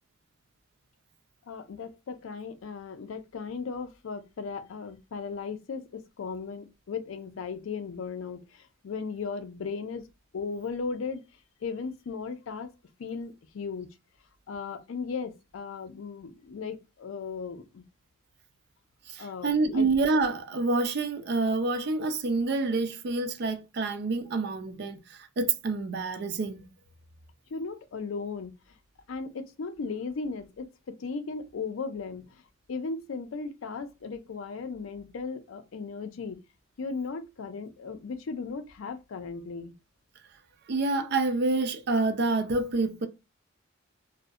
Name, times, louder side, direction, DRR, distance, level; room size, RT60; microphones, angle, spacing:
voice 1, 1.5-10.1 10.3-11.2 11.6-12.7 13.0-13.9 14.5-17.8 19.2-19.9 27.5-28.5 29.1-32.4 32.7-36.4 36.8-39.7, left 5 dB, 75° left, 0.4 m, -36 dB
voice 2, 19.1-26.6 40.7-43.1, right 3 dB, 55° right, 0.4 m, -27 dB
2.6 x 2.1 x 2.3 m
head